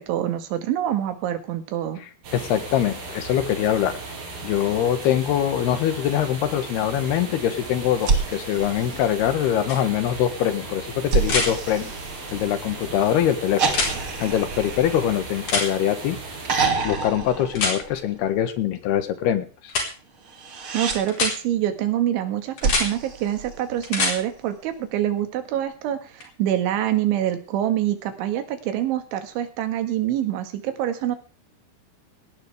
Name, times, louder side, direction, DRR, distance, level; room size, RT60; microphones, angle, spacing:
voice 1, 0.0-2.0 20.7-31.2, right 11 dB, 80° right, 8 dB, 4.1 m, -25 dB
sound 1, 2.2-16.7, right 3 dB, 50° right, 6.7 m, -37 dB
voice 2, 2.3-4.0 4.4-11.9 12.3-13.7 14.0-16.2 16.8-19.7, left 10 dB, 70° left, 10 dB, 3.2 m, -23 dB
sound 2, 8.0-9.6 11.1-12.8 13.6-15.9 16.4-18.3 20.2-21.0 22.6-24.1 25.6-25.7, right 4 dB, 35° right, 2.5 m, -28 dB
sound 3, 9.7-9.8 11.2-11.5 13.7-13.9 15.5-15.7 17.5-17.8 19.7-19.9 21.1-21.3 22.6-22.9 23.8-24.2 26.2-26.3, left 3 dB, 45° left, 5.5 m, -23 dB
18.0 x 17.5 x 3.5 m, 0.36 s
omnidirectional pair, 5.4 m